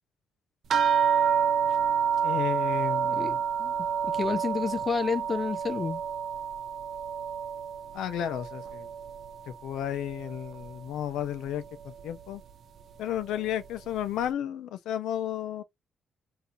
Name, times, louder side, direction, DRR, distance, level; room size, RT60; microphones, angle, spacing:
sound 1, 0.7-9.5 9.8-10.7 11.5-11.6 12.0-12.1, right 8 dB, 60° right, 0.5 m, -28 dB
voice 1, 2.2-3.4 7.9-8.9 9.5-12.4 13.0-15.6, left 10 dB, 85° left, 0.6 m, -33 dB
voice 2, 3.0-3.7 4.0-6.0, left 5 dB, 35° left, 0.3 m, -30 dB
3.7 x 2.7 x 2.6 m
cardioid pair, 90°, 0 cm